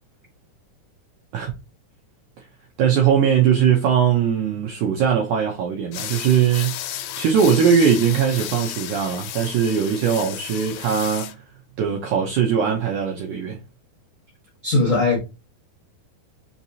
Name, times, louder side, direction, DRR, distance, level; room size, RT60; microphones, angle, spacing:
voice 1, 2.8-11.4 11.8-13.6, right 8 dB, 80° right, 1.8 m, -20 dB
sound 1, 5.9-11.3, left 12 dB, 90° left, 2.7 m, -33 dB
voice 2, 14.6-15.2, left 2 dB, 75° left, 0.7 m, -19 dB
5.8 x 2.9 x 2.7 m
omnidirectional pair, 4.5 m